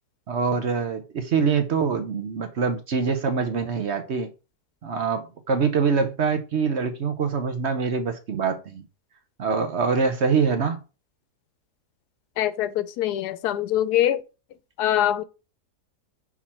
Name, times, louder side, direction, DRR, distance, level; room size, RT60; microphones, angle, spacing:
voice 1, 0.3-4.3 4.8-8.8 9.4-10.8, right 5 dB, 55° right, 0.9 m, -24 dB
voice 2, 12.4-14.2 14.8-15.2, left 12 dB, 80° left, 1.2 m, -23 dB
5.9 x 4.0 x 4.3 m
omnidirectional pair, 1.7 m